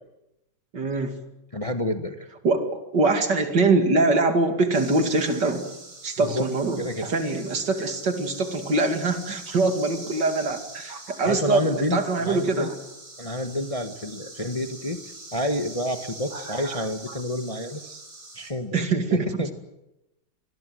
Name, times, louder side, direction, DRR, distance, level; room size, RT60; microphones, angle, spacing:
voice 1, 0.7-1.2 2.4-5.7 6.0-12.7 16.3-16.8 18.7-19.4, right 3 dB, 60° right, 7 dB, 3.0 m, -24 dB
voice 2, 1.5-2.2 6.2-6.4 6.8-7.1 11.2-12.7 13.2-15.0 15.3-18.0 18.3-18.8 19.1-19.5, left 1 dB, 20° left, 7 dB, 1.3 m, -29 dB
sound 1, 4.7-18.5, right 2 dB, 40° right, 5.3 m, -43 dB
26.0 x 21.0 x 7.8 m, 0.93 s
omnidirectional pair, 2.1 m